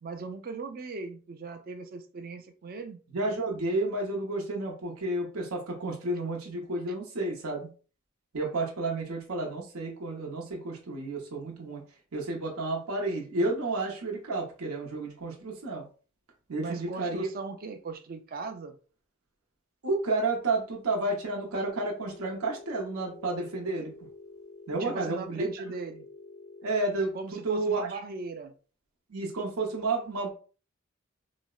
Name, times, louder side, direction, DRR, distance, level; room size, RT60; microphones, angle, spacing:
voice 1, 0.0-3.0 16.6-18.8 24.7-26.1 27.1-28.5, right 3 dB, 45° right, 7 dB, 0.4 m, -39 dB
voice 2, 3.1-7.7 8.3-11.8 12.1-15.8 16.5-17.3 19.8-23.9 24.7-25.5 26.6-27.1 27.4-27.9 29.1-30.3, right 2 dB, 85° right, -1 dB, 0.7 m, -31 dB
Telephone, 21.7-26.7, left 2 dB, 25° left, 0.4 m, -48 dB
3.9 x 2.0 x 2.3 m, 0.38 s
head